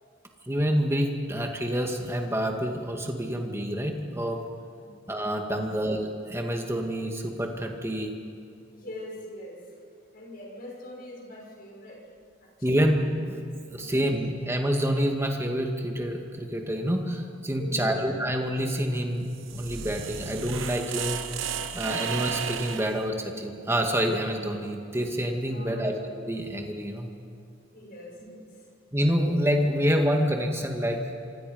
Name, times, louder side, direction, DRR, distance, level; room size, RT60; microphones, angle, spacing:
voice 1, 0.4-4.4 5.1-8.1 12.6-13.4 13.7-21.2 21.7-27.1 28.9-31.1, equal, 15° right, 2 dB, 2.2 m, -27 dB
voice 2, 8.7-9.6 10.1-12.0 12.4-12.8 13.6-13.9 17.6-18.0 21.6-21.7 25.4-25.9 27.7-28.5, left 1 dB, 50° left, -1 dB, 6.2 m, -43 dB
sound 1, 19.2-23.0, right 7 dB, 85° right, 1.0 m, -33 dB
26.5 x 25.5 x 5.4 m, 2.5 s
head